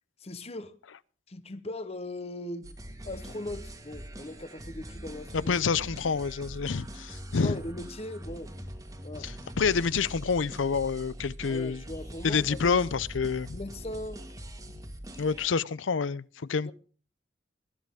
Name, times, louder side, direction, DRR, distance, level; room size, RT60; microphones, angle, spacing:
voice 1, 0.2-0.7 1.3-5.5 7.4-8.5 9.0-9.3 11.5-12.8 13.5-14.2 14.7-14.8 16.6-16.7, left 1 dB, 30° left, 0.9 m, -39 dB
sound 1, 2.6-15.5, equal, 20° right, 1.6 m, -43 dB
voice 2, 5.3-7.6 9.2-11.8 12.2-13.6 15.2-16.7, left 5 dB, 85° left, 0.6 m, -28 dB
20.5 x 11.5 x 3.6 m
head